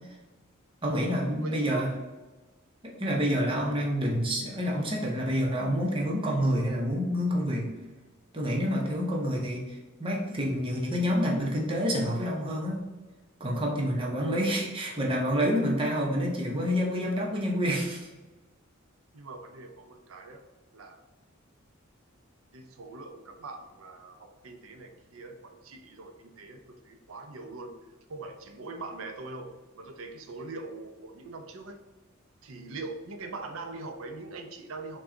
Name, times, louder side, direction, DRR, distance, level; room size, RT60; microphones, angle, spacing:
voice 1, 0.8-1.9 2.8-7.7 8.3-12.8 13.4-18.1, equal, 25° right, -2 dB, 0.8 m, -28 dB
voice 2, 1.4-1.9 19.1-20.4 20.7-21.0 22.5-27.8 28.1-31.8 32.4-35.0, right 3 dB, 75° right, 6 dB, 0.6 m, -42 dB
5.9 x 2.3 x 3.8 m, 1.2 s
head